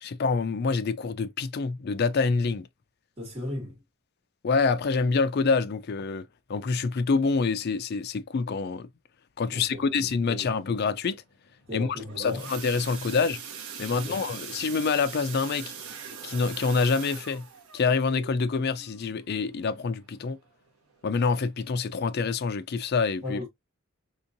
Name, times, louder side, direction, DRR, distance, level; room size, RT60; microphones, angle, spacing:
voice 1, 0.0-2.7 4.4-8.9 9.4-11.2 11.7-11.9 12.2-13.4 13.8-15.7 16.2-17.4 17.7-20.4 21.0-23.4, left 4 dB, 45° left, 0.4 m, -26 dB
voice 2, 3.2-3.8 9.5-10.0 10.3-10.5 11.7-12.5 13.9-14.2 23.2-23.5, left 2 dB, 25° right, 2.2 m, -36 dB
sound 1, 11.8-20.5 20.9-21.2 21.4-21.5 22.0-22.1, right 7 dB, 85° right, 0.9 m, -42 dB
3.5 x 2.8 x 2.6 m
head